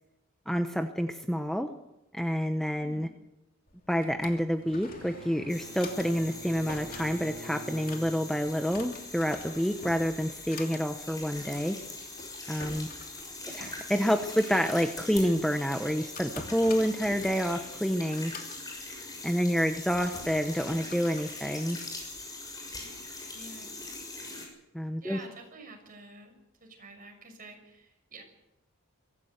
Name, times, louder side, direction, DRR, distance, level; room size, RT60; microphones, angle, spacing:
voice 1, 0.5-1.7 2.1-3.1 3.9-11.8 12.5-12.9 13.5-18.3 19.2-21.8 24.7-25.2, equal, ahead, 6 dB, 0.9 m, -28 dB
voice 2, 2.7-3.2 13.4-13.8 23.3-24.3 25.0-28.2, right 3 dB, 40° right, 4 dB, 6.1 m, -49 dB
Drawer open or close, 3.7-22.2, left 4 dB, 40° left, 2.8 m, -48 dB
Bowed string instrument, 4.6-8.7, right 1 dB, 65° right, 1.2 m, -46 dB
sound 1, 5.5-24.5, left 2 dB, 15° left, 6.5 m, -42 dB
23.5 x 16.0 x 8.1 m, 0.93 s
head